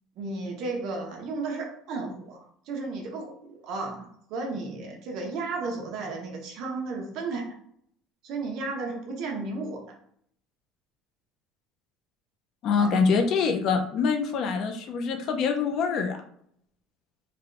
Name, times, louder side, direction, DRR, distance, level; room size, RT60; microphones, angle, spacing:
voice 1, 0.2-7.5 8.2-9.8 12.8-13.0, right 3 dB, 55° right, 2 dB, 0.8 m, -34 dB
voice 2, 12.6-16.2, left 5 dB, 45° left, 5 dB, 0.5 m, -25 dB
3.3 x 2.3 x 3.7 m, 0.66 s
cardioid pair, 160°, 0 cm